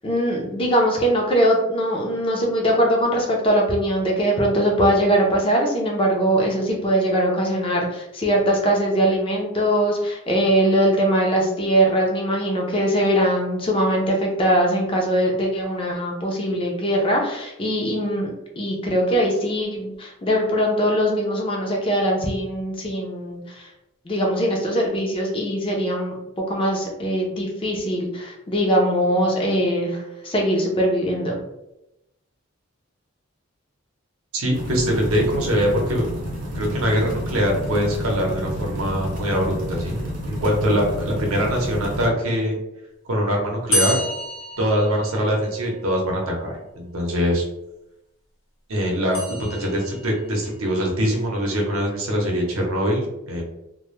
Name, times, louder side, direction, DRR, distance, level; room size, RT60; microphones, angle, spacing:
voice 1, 0.0-18.3 18.6-23.7 24.1-26.1 26.5-31.4, equal, 25° left, 0 dB, 0.4 m, -21 dB
voice 2, 34.3-36.1 36.6-42.6 43.1-44.0 44.6-47.4 48.7-49.2 49.5-53.4, equal, 80° right, 0 dB, 0.7 m, -23 dB
sound 1, 34.5-42.1, equal, 40° right, 0.6 m, -30 dB
sound 2, 43.7-45.7 49.1-50.2, left 1 dB, 65° left, 0.8 m, -28 dB
2.2 x 2.0 x 3.0 m, 0.90 s
head